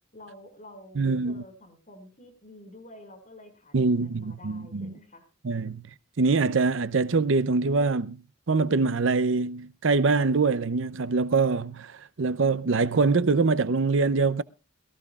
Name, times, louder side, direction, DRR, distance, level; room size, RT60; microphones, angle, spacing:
voice 1, 0.1-5.2, left 1 dB, 40° left, 5.1 m, -49 dB
voice 2, 1.0-1.4 3.7-4.9 5.4-5.9 6.2-8.2 8.5-14.4, right 4 dB, 70° right, 0.6 m, -24 dB
22.5 x 14.5 x 2.4 m
head